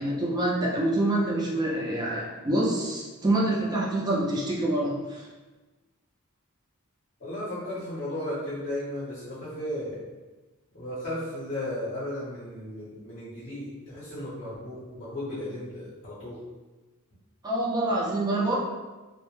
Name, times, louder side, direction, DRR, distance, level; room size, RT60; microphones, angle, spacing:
voice 1, 0.0-5.3 17.4-18.6, right 1 dB, 20° right, -4 dB, 0.4 m, -26 dB
voice 2, 7.2-10.0 10.7-16.4, left 1 dB, 40° left, -10 dB, 0.7 m, -35 dB
2.1 x 2.0 x 3.0 m, 1.2 s
head